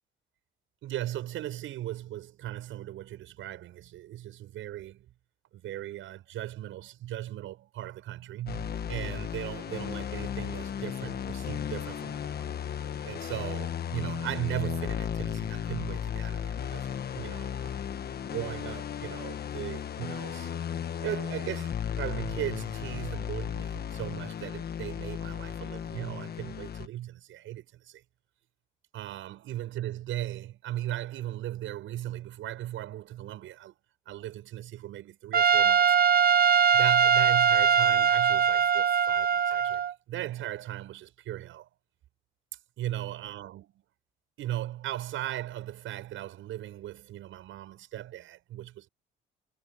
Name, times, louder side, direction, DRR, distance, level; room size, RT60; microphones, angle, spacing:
voice 1, 0.8-5.1 5.5-12.5 13.0-17.9 18.2-20.5 21.0-28.0 28.9-33.7 34.1-36.0 36.7-41.7 42.8-43.8 44.4-48.9, right 13 dB, 85° right, 7.7 m, -38 dB
sound 1, 8.5-26.9, left 8 dB, 55° left, 1.4 m, -35 dB
Trumpet, 35.3-39.9, right 7 dB, 50° right, 1.3 m, -22 dB
cardioid pair, 90°, 20 cm